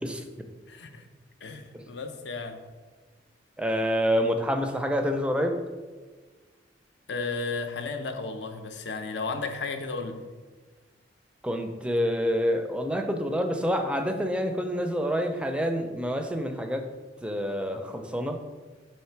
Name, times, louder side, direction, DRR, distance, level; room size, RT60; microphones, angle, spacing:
voice 1, 0.0-0.5 1.7-1.8 3.6-5.6 11.4-16.9 17.2-18.4, equal, 5° right, 6 dB, 0.4 m, -27 dB
voice 2, 0.7-1.1 1.4-2.6 7.1-10.2, left 4 dB, 75° left, 6 dB, 0.6 m, -34 dB
6.4 x 3.3 x 4.5 m, 1.4 s
head